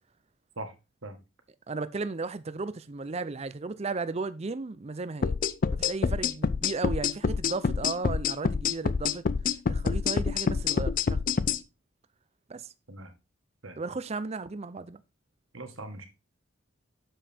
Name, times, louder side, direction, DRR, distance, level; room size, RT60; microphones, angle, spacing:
voice 1, 1.7-5.4 5.7-9.3 9.7-11.2 12.5-12.7 13.8-15.0, right 3 dB, 30° right, 0.5 m, -35 dB
sound 1, 5.2-11.6, left 5 dB, 40° left, 0.4 m, -27 dB
voice 2, 15.5-16.1, right 2 dB, 65° right, 1.6 m, -40 dB
7.2 x 5.4 x 4.3 m
head